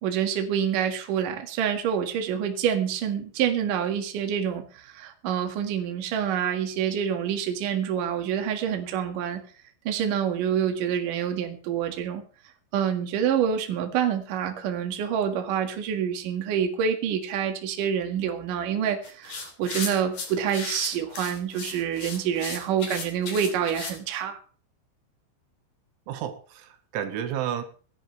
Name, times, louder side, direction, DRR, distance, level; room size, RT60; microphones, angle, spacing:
voice 1, 0.0-9.4 9.8-12.2 12.7-24.4, right 8 dB, 55° right, 5 dB, 2.9 m, -27 dB
sound 1, 19.0-24.0, left 4 dB, 45° left, 4.3 m, -35 dB
voice 2, 26.1-27.6, right 9 dB, 80° right, 8 dB, 3.7 m, -31 dB
26.5 x 11.0 x 3.3 m, 0.40 s
omnidirectional pair, 5.6 m